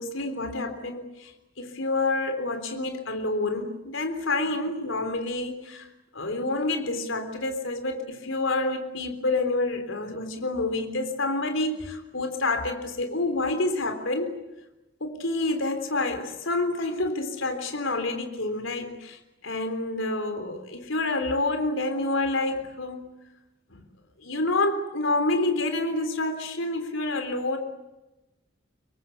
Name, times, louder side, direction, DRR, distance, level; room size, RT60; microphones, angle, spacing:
voice 1, 0.0-5.9 6.1-14.4 15.0-23.1 23.7-23.8 24.2-27.6, left 2 dB, 85° left, 6 dB, 3.7 m, -28 dB
26.0 x 23.5 x 8.2 m, 0.99 s
head